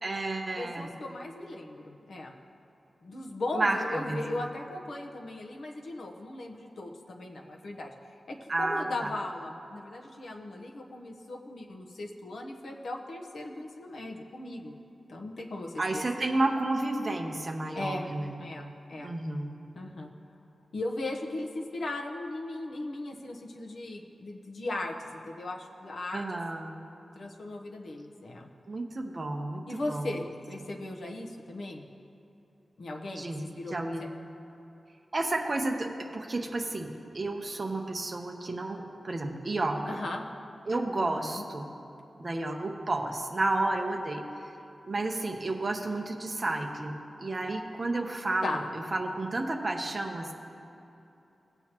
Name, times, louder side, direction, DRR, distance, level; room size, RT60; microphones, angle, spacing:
voice 1, 0.0-0.9 3.5-4.5 8.5-9.1 15.8-18.4 19.0-19.6 26.1-26.8 28.7-30.2 33.2-33.4 33.7-34.1 35.1-40.0 40.7-41.7 42.2-44.5 44.8-50.3, right 2 dB, 35° right, 2 dB, 0.8 m, -31 dB
voice 2, 0.5-2.3 3.0-14.8 15.1-16.2 17.7-18.0 18.4-19.1 19.7-20.1 20.7-26.2 27.1-28.5 29.7-31.9 32.8-34.1 39.9-40.2 41.0-41.4 48.4-48.6, left 2 dB, 65° left, 0 dB, 0.9 m, -38 dB
17.5 x 7.9 x 3.0 m, 2.9 s
wide cardioid pair, 155°, 0 cm